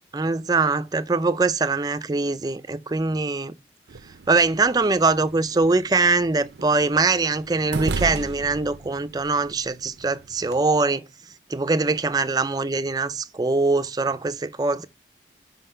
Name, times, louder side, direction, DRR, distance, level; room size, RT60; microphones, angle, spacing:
voice 1, 0.1-3.5 4.3-11.0 11.5-14.9, right 3 dB, 20° right, 0.4 m, -22 dB
sound 1, 3.9-10.6, right 3 dB, 80° right, 0.6 m, -36 dB
5.6 x 5.5 x 5.5 m
head